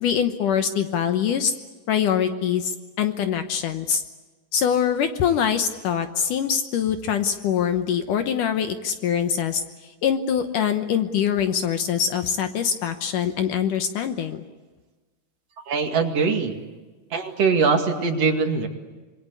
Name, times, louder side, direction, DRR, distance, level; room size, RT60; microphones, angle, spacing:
voice 1, 0.0-1.5 1.9-4.0 4.5-9.6 10.0-14.4, left 8 dB, 70° left, 8 dB, 2.1 m, -23 dB
voice 2, 15.7-16.6 17.1-18.7, right 5 dB, 45° right, 4 dB, 2.8 m, -22 dB
26.5 x 22.5 x 8.4 m, 1.3 s
omnidirectional pair, 4.8 m